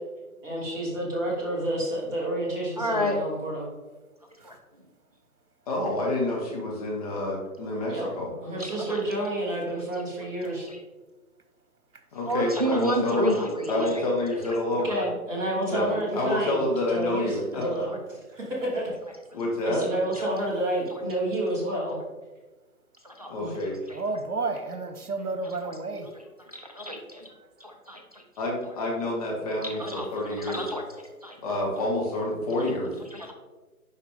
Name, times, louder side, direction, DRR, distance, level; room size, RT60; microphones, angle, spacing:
voice 1, 0.4-3.7 7.9-8.1 8.4-10.7 14.8-16.6 16.9-18.0 18.3-18.9 19.6-22.0 23.4-23.5, right 1 dB, 5° right, -5 dB, 1.0 m, -29 dB
voice 2, 2.8-3.3 4.4-4.6 8.4-9.2 9.7-10.8 12.2-14.0 14.4-15.1 15.6-16.0 17.9-18.0 19.3-19.4 20.1-20.3 20.9-21.0 21.7-22.0 23.0-23.3 23.6-24.2 24.7-24.8 25.4-25.8 26.1-27.3 27.6-28.7 29.5-31.9 32.3-32.7 33.1-33.3, equal, 25° right, 1 dB, 0.5 m, -33 dB
voice 3, 5.7-8.3 10.4-10.5 12.1-13.3 13.7-14.9 15.7-15.9 16.1-17.6 19.3-19.8 23.3-23.8 28.4-30.6 31.4-33.0, left 1 dB, 25° left, -2 dB, 1.2 m, -28 dB
voice 4, 23.9-26.1, right 3 dB, 85° right, 9 dB, 1.0 m, -32 dB
10.5 x 4.2 x 3.5 m, 1.2 s
figure-of-eight pair, 145°, 45 cm